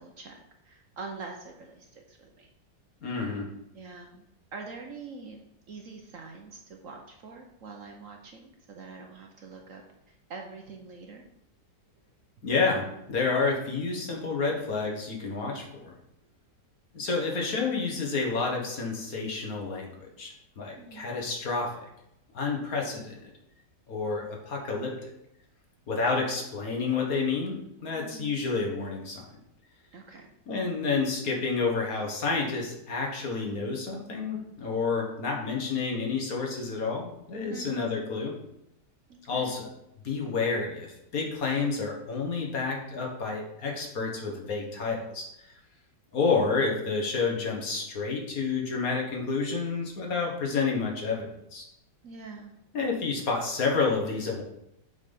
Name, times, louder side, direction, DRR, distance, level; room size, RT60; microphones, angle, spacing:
voice 1, 0.0-2.5 3.7-4.2 4.5-5.4 5.7-9.8 10.1-11.2 20.8-21.1 27.9-28.4 29.9-30.3 37.5-37.8 39.1-39.6 52.0-52.5, right 4 dB, 55° right, 2 dB, 1.0 m, -44 dB
voice 2, 3.0-3.5 12.4-15.9 16.9-21.9 22.3-23.3 23.9-24.9 25.9-29.3 30.5-38.3 39.3-39.7 40.0-45.3 46.1-51.7 52.7-54.4, left 4 dB, 55° left, 0 dB, 1.7 m, -29 dB
7.4 x 4.0 x 5.2 m, 0.82 s
omnidirectional pair, 1.9 m